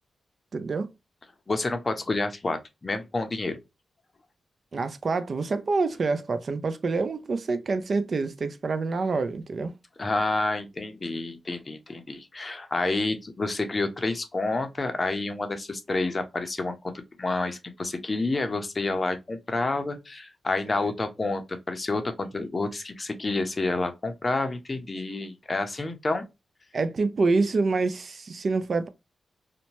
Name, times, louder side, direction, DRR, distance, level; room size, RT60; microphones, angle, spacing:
voice 1, 0.5-0.9 4.7-9.7 20.8-20.9 26.7-28.9, right 3 dB, 55° right, 0.4 m, -27 dB
voice 2, 1.5-3.6 10.0-16.9 17.2-26.3, left 2 dB, 35° left, 0.5 m, -29 dB
2.7 x 2.1 x 2.9 m
cardioid pair, 80°, 0 cm